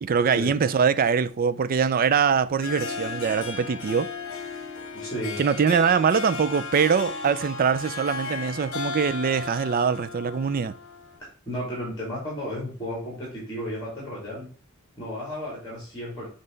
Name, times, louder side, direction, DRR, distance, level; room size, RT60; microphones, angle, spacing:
voice 1, 0.0-4.1 5.4-10.8, right 6 dB, 40° right, 0.4 m, -23 dB
Harp, 2.5-11.2, left 4 dB, 65° left, 1.0 m, -35 dB
voice 2, 4.9-5.4 11.4-14.5 15.0-16.3, equal, 20° left, 2.9 m, -33 dB
7.6 x 3.3 x 3.9 m
head